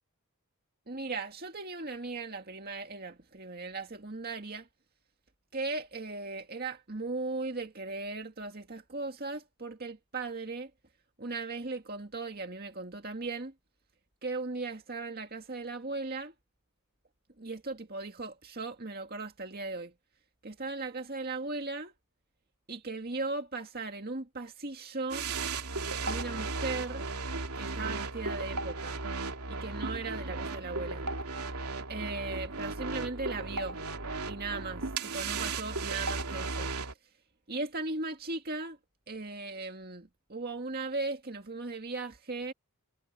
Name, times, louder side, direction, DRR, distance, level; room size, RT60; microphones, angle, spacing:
voice 1, 0.9-4.7 5.5-10.7 11.2-13.5 14.2-16.3 17.4-19.9 20.4-21.9 22.7-25.3 26.0-27.1 27.5-29.0 29.5-31.1 31.9-33.8 34.3-36.7 37.5-38.8 39.1-42.5, right 3 dB, 45° right, 2.0 m, -37 dB
sound 1, 25.1-36.9, right 3 dB, 85° right, 2.9 m, -35 dB
head